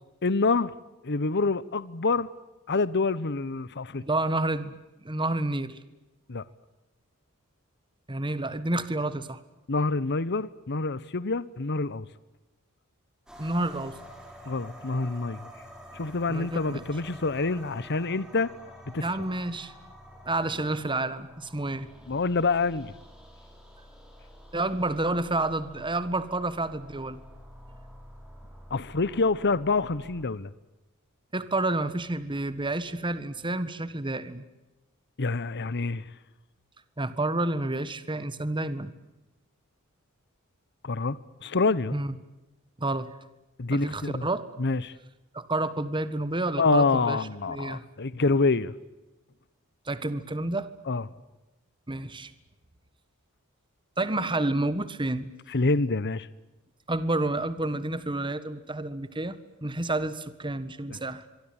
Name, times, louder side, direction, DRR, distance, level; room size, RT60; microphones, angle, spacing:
voice 1, 0.2-0.7 1.0-2.3 2.7-4.0 6.3-6.4 9.7-12.1 14.5-15.5 15.9-18.5 18.9-19.0 22.1-22.9 28.7-30.5 35.2-36.1 40.8-42.0 43.6-44.3 44.6-44.9 46.6-48.7 50.9-51.0 55.5-56.3, left 3 dB, 50° left, 17 dB, 1.0 m, -26 dB
voice 2, 4.0-5.8 8.1-9.4 13.4-14.0 16.3-16.8 19.0-19.7 20.2-21.9 24.5-27.2 31.3-34.4 37.0-38.9 41.9-42.1 42.8-43.1 43.7-44.5 45.3-47.2 47.4-47.8 49.9-50.7 51.9-52.3 54.0-55.3 56.9-59.3 59.6-61.2, right 2 dB, 20° right, 13 dB, 1.6 m, -29 dB
sound 1, 13.3-30.2, equal, 5° right, 6.3 m, -49 dB
25.0 x 24.0 x 8.9 m, 1.0 s
head